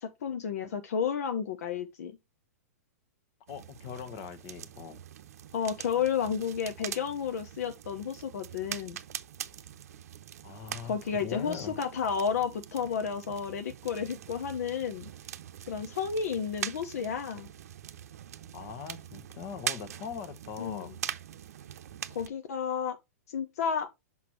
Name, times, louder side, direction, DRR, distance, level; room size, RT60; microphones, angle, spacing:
voice 1, 0.0-2.2 5.5-9.0 10.8-15.1 15.7-17.5 20.6-20.9 22.1-23.0 23.3-23.9, left 7 dB, 70° left, 0.9 m, -32 dB
voice 2, 3.5-5.0 10.4-11.8 18.5-20.9, left 7 dB, 45° left, 1.2 m, -41 dB
sound 1, 3.5-22.3, right 10 dB, 70° right, 0.6 m, -43 dB
5.9 x 5.6 x 3.1 m
hypercardioid pair, 120°, 9 cm